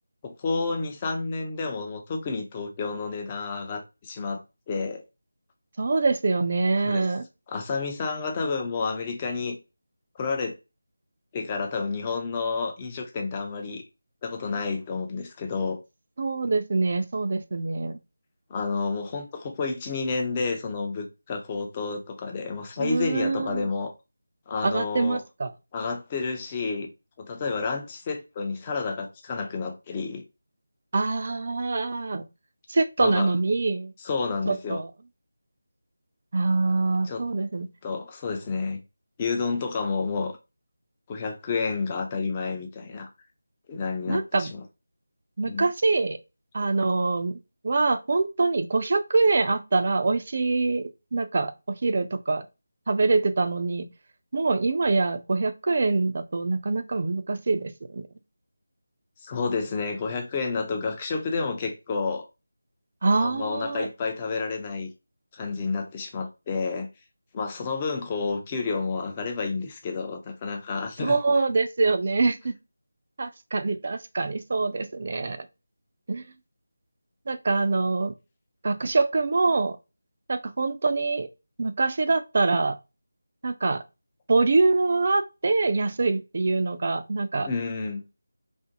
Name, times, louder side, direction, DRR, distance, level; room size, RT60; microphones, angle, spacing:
voice 1, 0.2-4.4 4.7-5.0 6.8-7.1 7.5-9.6 10.2-10.5 11.3-13.8 14.2-15.8 18.5-23.9 24.5-25.2 25.7-26.9 27.2-30.2 33.0-33.3 34.0-34.8 37.0-37.2 37.8-38.8 39.2-40.3 41.1-43.1 43.7-44.6 45.5-45.6 59.2-62.3 63.2-64.9 65.3-66.9 67.3-71.2 87.4-88.0, left 4 dB, 20° left, 0.5 m, -30 dB
voice 2, 5.8-7.2 16.2-18.0 22.8-23.7 24.6-25.5 30.9-32.3 32.7-33.9 34.5-34.9 36.3-37.7 44.1-44.5 45.4-46.2 46.5-47.4 47.6-51.5 51.8-52.4 52.9-53.9 54.3-58.1 63.0-63.9 71.0-72.5 73.2-75.5 76.1-76.3 77.3-78.1 78.6-79.8 80.3-81.3 81.6-82.8 83.4-83.8 84.3-87.5, right 3 dB, 45° right, 0.4 m, -24 dB
2.5 x 2.1 x 2.7 m
figure-of-eight pair, 165°, 0 cm